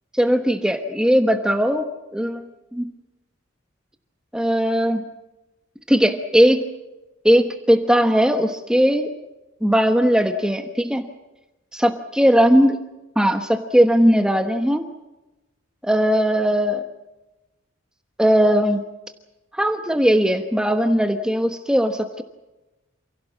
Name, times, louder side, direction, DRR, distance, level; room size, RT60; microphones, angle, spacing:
voice 1, 0.1-1.9 2.1-2.9 4.3-5.0 5.9-6.6 7.2-9.1 9.6-11.1 11.7-12.8 13.2-14.8 15.8-16.8 18.2-18.8 19.5-22.2, equal, 5° right, 5 dB, 1.1 m, -18 dB
28.0 x 17.0 x 7.3 m, 1.0 s
head